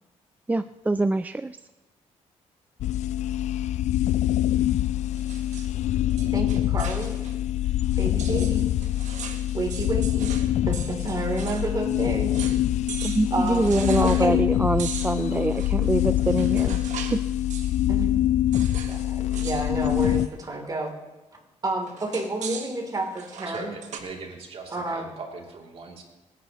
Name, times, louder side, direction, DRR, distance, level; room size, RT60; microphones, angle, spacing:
voice 1, 0.5-1.6 13.0-16.8 17.1-17.2, right 2 dB, 15° right, 11 dB, 0.3 m, -24 dB
sound 1, 2.8-20.3, left 13 dB, 70° left, 0.4 m, -25 dB
sound 2, 5.1-7.4 7.6-7.7 8.2-11.7 12.0-12.1 12.3-12.6 12.9-14.3 14.8-17.2 17.5-17.9 18.5-19.0 19.3-19.7 20.0-20.3 21.9-24.0, right 7 dB, 75° right, 1.5 m, -39 dB
voice 2, 6.3-7.1 8.0-8.6 9.5-10.3 10.7-12.3 13.3-14.4 17.9-18.1 18.9-20.9 21.6-23.7 24.7-25.1, right 2 dB, 30° right, 1 dB, 3.2 m, -30 dB
voice 3, 23.4-26.0, right 4 dB, 55° right, 0 dB, 2.9 m, -40 dB
24.0 x 10.0 x 3.0 m, 1.1 s
cardioid pair, 85°, 12 cm